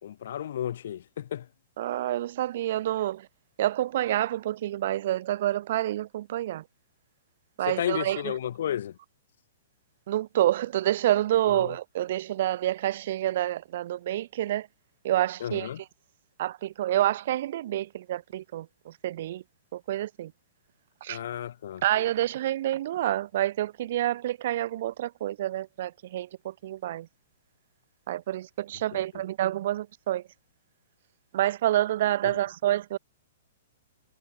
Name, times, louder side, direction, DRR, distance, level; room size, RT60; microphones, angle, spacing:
voice 1, 0.0-1.5 7.7-9.0 11.5-11.7 15.4-15.8 21.1-21.8 28.9-29.2 32.2-32.4, left 10 dB, 65° left, 0.9 m, -33 dB
voice 2, 1.8-3.3 3.6-6.6 7.6-8.3 10.1-14.7 15.0-15.7 16.4-19.4 19.7-20.3 21.0-21.2 21.8-27.1 28.1-30.2 31.3-33.0, right 13 dB, 55° right, 0.5 m, -28 dB
hypercardioid pair, 120°, 0 cm